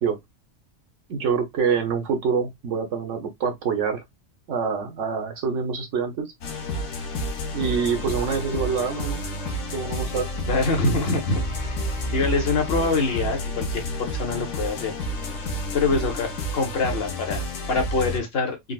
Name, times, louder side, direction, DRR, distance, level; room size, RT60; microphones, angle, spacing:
voice 1, 1.1-4.0 4.5-6.3 7.5-9.2 9.7-10.3, right 6 dB, 75° right, 1.2 m, -26 dB
sound 1, 6.4-18.2, left 1 dB, 80° left, 1.2 m, -30 dB
voice 2, 10.5-14.9 15.7-18.6, left 3 dB, 55° left, 1.1 m, -25 dB
3.9 x 2.2 x 2.3 m
omnidirectional pair, 1.3 m